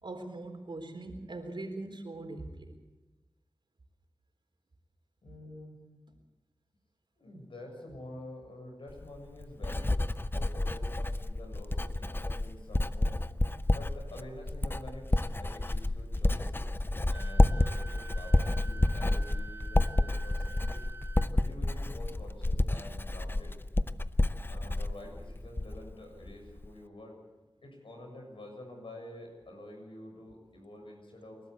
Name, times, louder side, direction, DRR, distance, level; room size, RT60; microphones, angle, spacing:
voice 1, 0.0-2.7, right 2 dB, 65° right, 5 dB, 4.0 m, -41 dB
voice 2, 5.2-5.8 7.2-9.9 10.3-13.2 13.7-16.5 17.1-20.9 21.3-23.5 24.5-27.2 27.6-31.4, left 1 dB, 75° left, 2 dB, 7.2 m, -48 dB
Writing, 8.9-25.9 26.2-26.7, left 2 dB, 25° left, 0.8 m, -30 dB
Wind instrument woodwind instrument, 17.1-21.3, right 3 dB, 20° right, 0.6 m, -47 dB
28.5 x 12.5 x 8.2 m, 1.1 s
cardioid pair, 50°, 9 cm